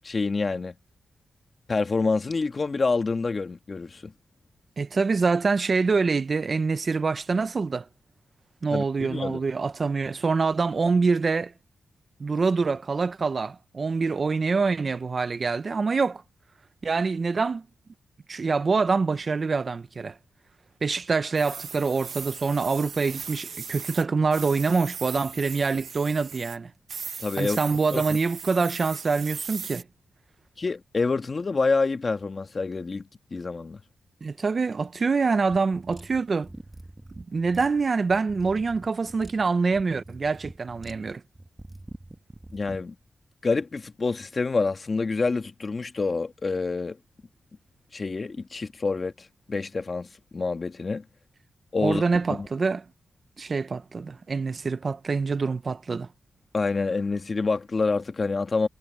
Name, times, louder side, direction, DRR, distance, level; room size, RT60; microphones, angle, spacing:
voice 1, 0.0-0.7 1.7-4.1 8.7-9.4 27.2-27.6 27.9-28.0 30.6-33.0 33.3-33.8 42.5-43.0 43.4-47.0 47.9-51.0 51.7-52.0 52.3-52.5 56.5-58.7, left 4 dB, 40° left, 1.8 m, -27 dB
voice 2, 4.8-7.9 8.6-11.5 12.2-16.2 16.8-17.6 18.3-20.2 20.8-26.7 27.4-29.8 34.2-36.5 37.2-41.2 51.8-52.8 53.4-56.1, right 4 dB, 45° right, 0.9 m, -25 dB
sound 1, 21.3-24.0 24.3-26.6 26.9-29.8, right 6 dB, 65° right, 1.4 m, -38 dB
sound 2, 35.5-42.8, right 1 dB, 15° right, 2.1 m, -45 dB
cardioid pair, 80°, 0 cm